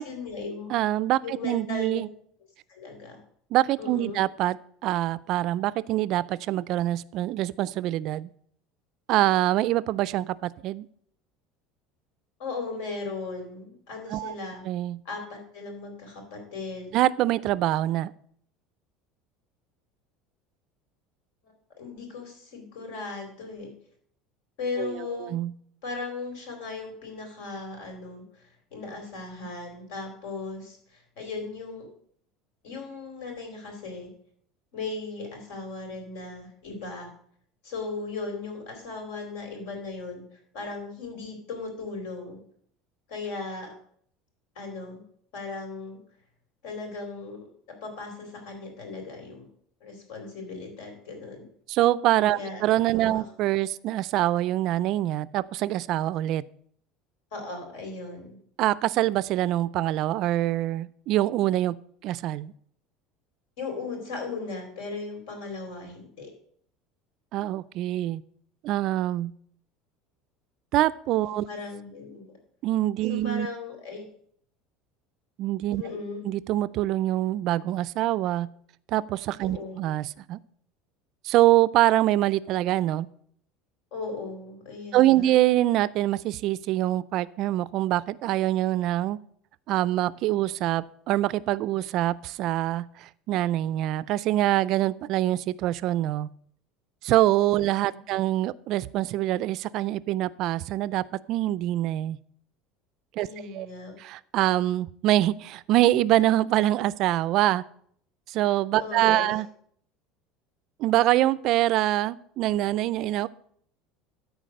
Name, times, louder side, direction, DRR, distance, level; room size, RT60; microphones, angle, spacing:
voice 1, 0.0-0.7 1.2-2.0 2.7-3.2 3.8-4.2 12.4-14.6 15.0-17.0 21.4-23.7 24.6-25.3 25.8-31.9 32.6-34.1 34.7-37.1 37.6-42.4 43.1-43.7 44.5-45.0 45.3-46.0 46.6-47.5 47.8-49.5 49.8-51.5 52.3-52.6 53.0-53.2 57.3-58.4 63.6-66.3 71.5-72.2 73.1-74.0 75.8-76.2 79.4-79.7 83.9-85.3 97.6-97.7 103.2-103.9 108.8-109.3, left 3 dB, 80° left, 3 dB, 4.2 m, -37 dB
voice 2, 0.7-2.1 3.5-4.6 4.8-8.3 9.1-10.9 14.1-14.3 14.7-15.0 16.9-18.1 24.8-25.5 51.7-56.4 58.6-61.8 62.0-62.5 67.3-68.2 68.6-69.3 70.7-71.5 72.6-73.5 75.4-75.8 76.2-78.5 78.9-80.4 81.2-83.1 84.9-89.2 89.7-96.3 97.0-102.2 103.2-103.3 103.5-103.7 104.0-107.6 108.3-109.5 110.8-113.3, right 14 dB, 50° right, 19 dB, 0.3 m, -25 dB
13.5 x 4.6 x 6.4 m, 0.63 s
cardioid pair, 150°, 0 cm